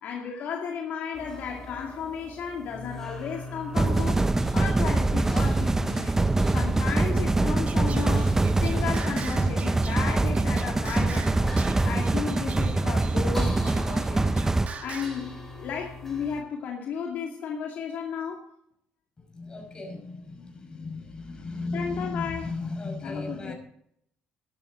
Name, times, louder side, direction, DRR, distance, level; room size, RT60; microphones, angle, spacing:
voice 1, 0.0-6.2 6.5-11.5 11.8-14.5 14.8-18.5 21.7-22.5 23.0-23.5, left 6 dB, 65° left, 0 dB, 2.2 m, -34 dB
sound 1, 1.1-16.4, left 1 dB, 10° left, 4.4 m, -42 dB
sound 2, 3.7-14.7, right 2 dB, 15° right, 0.6 m, -24 dB
Singing, 7.7-15.2, right 5 dB, 45° right, 1.8 m, -42 dB
voice 2, 19.3-23.5, left 3 dB, 25° left, 3 dB, 5.6 m, -35 dB
13.5 x 12.0 x 3.9 m, 0.69 s
cardioid pair, 90°, 3 cm